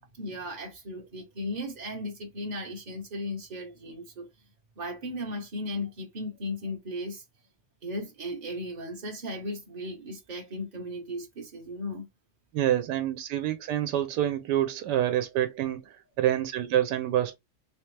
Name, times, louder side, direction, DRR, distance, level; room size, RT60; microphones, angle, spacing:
voice 1, 0.2-4.3 4.8-7.2 7.8-12.1, left 1 dB, 40° right, 0.6 m, -36 dB
voice 2, 12.5-17.4, right 11 dB, 80° right, 1.2 m, -27 dB
3.3 x 3.2 x 3.1 m
omnidirectional pair, 1.8 m